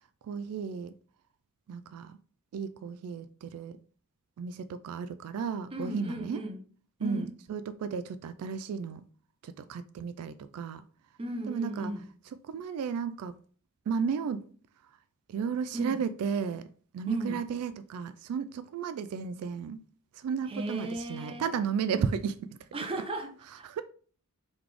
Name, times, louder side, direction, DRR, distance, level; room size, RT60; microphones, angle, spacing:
voice 1, 0.3-0.9 1.7-2.2 2.5-3.8 4.4-6.4 7.0-9.0 9.4-10.8 11.5-11.9 12.5-13.4 13.9-14.4 15.3-19.8 20.1-22.6 23.6-23.8, right 6 dB, 75° right, 0.3 m, -34 dB
voice 2, 5.7-6.6 7.0-7.3 11.2-12.0 15.7-16.0 17.1-17.4 20.5-21.5 22.7-23.7, right 1 dB, 25° right, 0.6 m, -36 dB
3.9 x 3.1 x 3.3 m
head